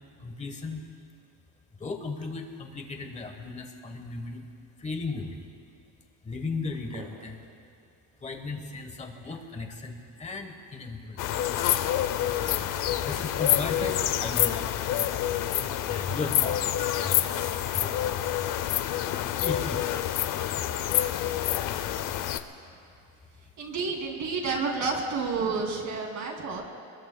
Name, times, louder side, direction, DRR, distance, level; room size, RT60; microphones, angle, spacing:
voice 1, 0.2-0.8 1.8-4.5 4.8-5.4 6.2-7.4 8.2-11.4 13.0-15.1 15.9-18.2 19.2-20.2, left 3 dB, 15° left, 4 dB, 1.2 m, -36 dB
sound 1, 6.7-7.5 8.9-9.8 11.0-12.4 13.0-13.1 13.4-14.6, right 5 dB, 60° right, 2.3 m, -47 dB
sound 2, 11.2-22.4, left 11 dB, 50° left, 0.6 m, -27 dB
sound 3, 12.2-18.2, left 3 dB, 75° left, 2.5 m, -49 dB
voice 2, 23.6-26.7, right 4 dB, 40° right, 0 dB, 2.8 m, -30 dB
26.0 x 20.5 x 2.3 m, 2.6 s
cardioid pair, 160°, 42 cm